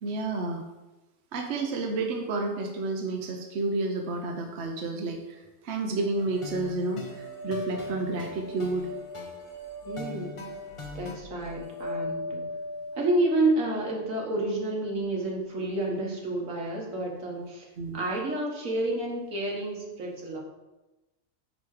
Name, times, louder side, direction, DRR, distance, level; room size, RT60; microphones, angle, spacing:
voice 1, 0.0-0.7 1.3-8.9 17.8-18.0, right 3 dB, 60° right, 2 dB, 1.0 m, -30 dB
sound 1, 6.0-15.2, left 1 dB, 45° left, 1.1 m, -40 dB
sound 2, 6.2-11.1, left 3 dB, 30° left, 0.8 m, -43 dB
voice 2, 9.8-10.3 11.0-12.5 12.9-17.7 17.9-20.4, right 2 dB, 80° right, -1 dB, 1.8 m, -29 dB
9.3 x 3.5 x 4.8 m, 1.1 s
omnidirectional pair, 1.4 m